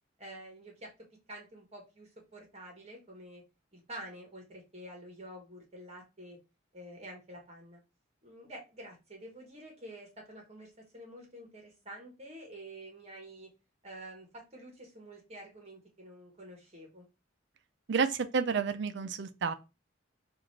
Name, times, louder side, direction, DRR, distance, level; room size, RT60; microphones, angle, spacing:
voice 1, 0.2-0.9 1.3-3.4 3.7-6.4 6.7-7.8 8.2-13.5 13.8-17.0, right 1 dB, 35° right, 1.4 m, -48 dB
voice 2, 17.9-19.5, right 5 dB, 65° right, 0.5 m, -30 dB
5.8 x 2.6 x 3.2 m
head